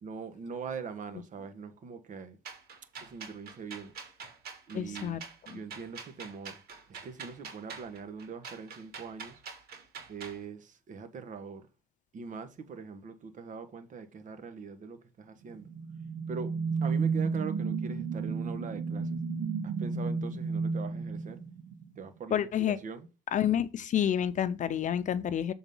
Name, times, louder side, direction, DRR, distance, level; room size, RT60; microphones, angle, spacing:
voice 1, 0.0-2.4 2.9-3.9 4.7-6.6 6.9-9.4 10.1-11.7 12.1-15.7 16.3-19.2 19.6-21.4 21.9-23.1, right 5 dB, 50° right, 1.4 m, -42 dB
sound 1, 2.4-10.4, right 5 dB, 65° right, 2.8 m, -45 dB
voice 2, 4.7-5.2 5.5-5.6 22.3-22.8 23.3-25.5, left 10 dB, 50° left, 0.7 m, -29 dB
sound 2, 15.5-22.0, right 4 dB, 80° right, 1.7 m, -32 dB
7.2 x 4.0 x 5.5 m
cardioid pair, 110°, 17 cm